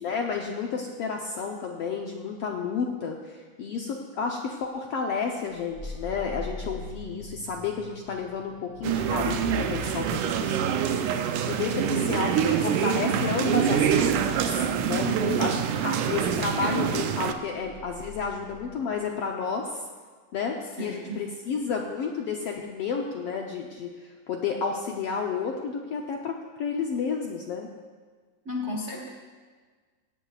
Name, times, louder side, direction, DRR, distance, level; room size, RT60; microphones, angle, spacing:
voice 1, 0.0-10.8 11.5-12.4 12.6-15.1 15.4-15.6 15.8-19.8 20.3-27.7, left 5 dB, 70° left, 1 dB, 1.4 m, -31 dB
sound 1, 5.5-19.0, left 2 dB, 25° left, 3.4 m, -40 dB
sound 2, 8.8-17.3, right 8 dB, 80° right, 2.2 m, -26 dB
voice 2, 11.7-13.0 14.9-15.7 20.8-21.3 28.4-29.1, left 1 dB, 45° right, -1 dB, 0.8 m, -35 dB
17.0 x 17.0 x 2.4 m, 1.5 s
omnidirectional pair, 3.6 m